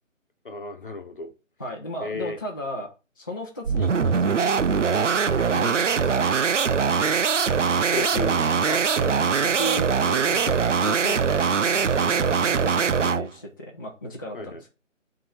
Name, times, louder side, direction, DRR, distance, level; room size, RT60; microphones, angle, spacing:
voice 1, 0.4-1.3 2.0-2.4 7.0-7.3 7.7-8.5 9.9-10.5 13.0-13.1 14.3-14.6, left 2 dB, 40° left, 1.5 m, -34 dB
voice 2, 1.6-5.2 5.5-6.1 8.7-9.9 10.2-14.7, equal, 15° left, 0.9 m, -35 dB
sound 1, 3.6-13.3, right 6 dB, 65° right, 0.6 m, -22 dB
9.3 x 3.8 x 4.8 m
figure-of-eight pair, 160°, 39 cm